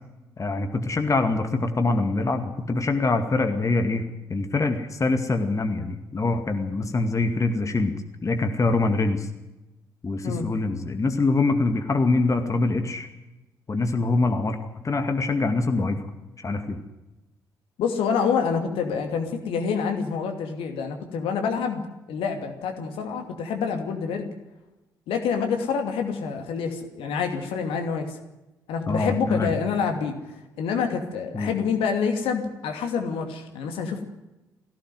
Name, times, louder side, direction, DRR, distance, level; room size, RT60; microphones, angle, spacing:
voice 1, 0.4-4.0 4.3-7.9 8.2-9.3 10.0-13.1 13.7-14.6 14.8-16.0 16.4-16.8 28.9-29.5 31.3-31.5, left 3 dB, 30° left, 6 dB, 2.2 m, -24 dB
voice 2, 17.8-21.8 22.1-24.3 25.1-28.2 28.7-30.2 30.6-34.0, left 6 dB, 60° left, 5 dB, 2.7 m, -27 dB
22.5 x 16.5 x 7.9 m, 1.0 s
figure-of-eight pair, 40°, 10 cm